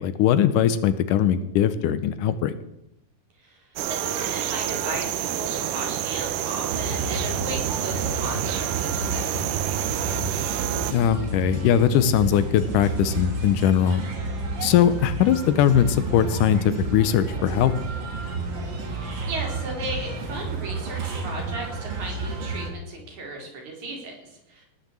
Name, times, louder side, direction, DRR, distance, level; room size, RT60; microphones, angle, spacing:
voice 1, 0.0-2.5 10.9-14.0 14.6-17.7, left 10 dB, 80° left, 13 dB, 2.2 m, -20 dB
sound 1, 3.8-10.9, right 11 dB, 80° right, 2.3 m, -28 dB
voice 2, 4.0-9.5 18.8-24.6, right 2 dB, 60° right, 0 dB, 4.6 m, -36 dB
sound 2, 6.7-22.7, right 3 dB, 40° right, 2.2 m, -31 dB
19.0 x 6.5 x 7.5 m, 0.84 s
omnidirectional pair, 3.8 m